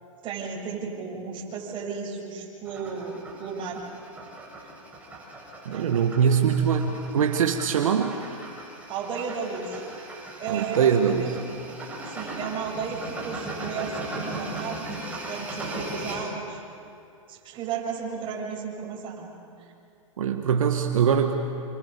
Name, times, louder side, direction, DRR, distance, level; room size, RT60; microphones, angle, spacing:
voice 1, 0.2-3.8 4.6-4.7 5.7-5.9 8.9-9.8 10.4-11.4 12.1-16.6 17.3-19.3, right 6 dB, 30° right, -1 dB, 7.1 m, -34 dB
sound 1, 2.7-16.3, right 1 dB, 10° right, 8.0 m, -38 dB
voice 2, 5.7-8.2 10.5-11.4 20.2-21.3, right 7 dB, 75° right, 4 dB, 1.9 m, -22 dB
28.5 x 26.5 x 7.0 m, 2.5 s
hypercardioid pair, 130°, 17 cm